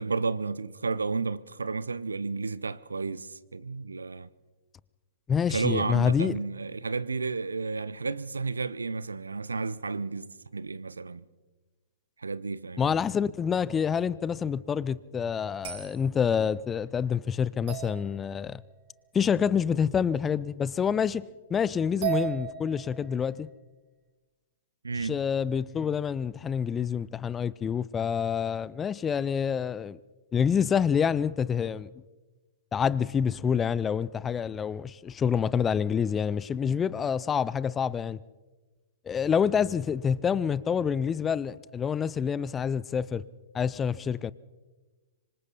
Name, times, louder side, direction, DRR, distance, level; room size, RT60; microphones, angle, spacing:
voice 1, 0.0-4.3 5.5-11.2 12.2-13.0 24.8-25.2, right 4 dB, 80° right, 0.7 m, -32 dB
voice 2, 5.3-6.4 12.8-18.6 19.1-23.5 25.0-30.0 30.3-31.9 32.7-38.2 39.1-43.2 43.5-44.3, left 7 dB, 15° left, 0.5 m, -27 dB
sound 1, 15.6-16.0 17.7-18.7 20.8-20.9 22.0-23.3, right 13 dB, 50° right, 4.9 m, -35 dB
26.5 x 24.5 x 4.1 m
figure-of-eight pair, 110°, 0 cm